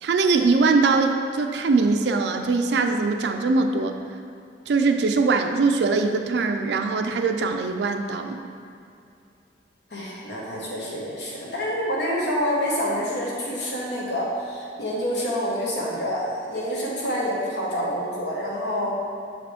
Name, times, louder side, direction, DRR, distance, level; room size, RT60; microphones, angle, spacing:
voice 1, 0.0-3.9 4.7-8.4, right 4 dB, 70° right, 5 dB, 0.4 m, -22 dB
voice 2, 9.9-19.0, equal, 70° left, -4 dB, 1.4 m, -27 dB
6.9 x 5.0 x 3.5 m, 2.5 s
head